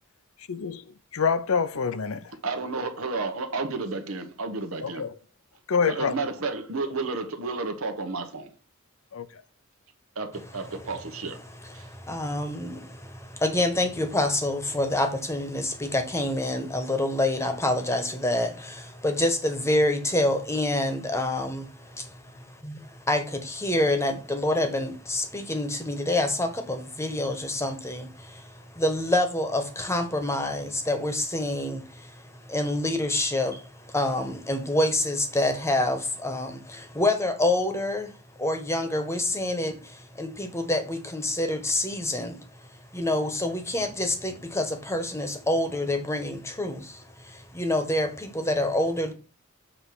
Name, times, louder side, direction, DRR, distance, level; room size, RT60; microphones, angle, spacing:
voice 1, 0.5-0.8 1.1-2.2 4.8-5.1 5.7-6.1 9.1-9.2, left 5 dB, 70° left, 0.6 m, -26 dB
voice 2, 2.4-5.1 5.9-8.5 10.2-11.4, right 3 dB, 75° right, 1.2 m, -31 dB
voice 3, 10.3-49.1, left 1 dB, 15° left, 1.2 m, -27 dB
7.4 x 3.3 x 6.2 m
head